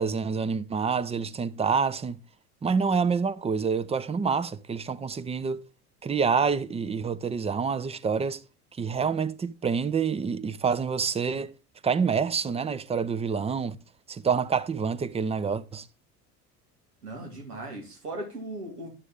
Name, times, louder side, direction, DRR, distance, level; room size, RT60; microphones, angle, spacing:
voice 1, 0.0-2.2 2.6-5.6 6.0-8.4 8.8-11.5 11.8-13.8 14.1-15.9, right 5 dB, 15° right, 0.5 m, -27 dB
voice 2, 17.0-18.9, right 1 dB, 85° right, 2.2 m, -38 dB
10.0 x 6.5 x 3.5 m
hypercardioid pair, 70°, 46 cm